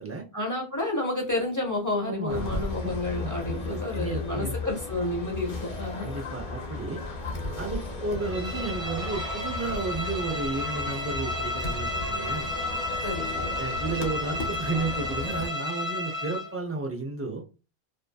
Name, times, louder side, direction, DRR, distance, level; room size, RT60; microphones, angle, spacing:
voice 1, 0.3-6.1 13.0-13.5, left 2 dB, 20° left, 0 dB, 0.7 m, -30 dB
voice 2, 2.0-2.5 2.8-2.9 3.2-4.6 6.0-7.0 7.6-12.5 13.6-17.4, right 3 dB, 20° right, 1 dB, 0.4 m, -33 dB
sound 1, 2.3-15.5, left 2 dB, 55° left, 0.8 m, -35 dB
Bowed string instrument, 8.2-16.6, left 1 dB, 40° right, 0.7 m, -33 dB
2.6 x 2.4 x 2.2 m, 0.31 s
omnidirectional pair, 1.0 m